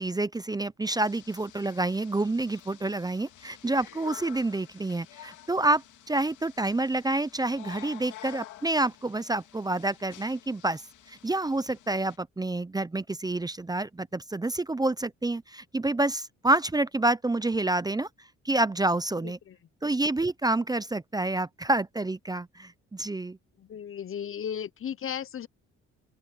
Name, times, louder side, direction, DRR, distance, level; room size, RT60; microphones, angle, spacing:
voice 1, 0.0-10.8 11.1-18.1 18.4-19.4 19.8-23.4, right 2 dB, 15° right, 0.6 m, -28 dB
sound 1, 0.9-12.2, left 14 dB, 85° left, 2.4 m, -50 dB
voice 2, 19.2-19.6 23.6-25.5, left 8 dB, 45° left, 0.7 m, -35 dB
open air
cardioid pair, 90°, 30 cm